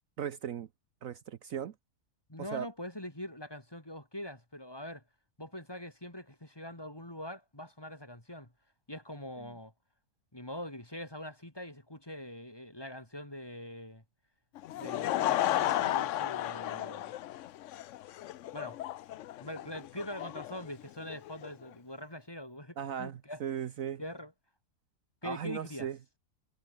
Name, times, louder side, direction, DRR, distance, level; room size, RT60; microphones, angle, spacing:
voice 1, 0.2-0.7 1.0-1.7 2.5-2.7 22.8-24.0 25.2-26.0, right 9 dB, 65° right, 1.2 m, -37 dB
voice 2, 2.3-5.0 5.4-8.5 8.9-9.7 10.3-14.0 14.7-17.1 18.5-18.8 19.4-23.4 24.0-24.3 25.2-25.9, left 1 dB, 15° left, 3.1 m, -43 dB
Laughter / Crowd, 14.6-21.5, left 13 dB, 65° left, 0.8 m, -33 dB
omnidirectional pair, 1.6 m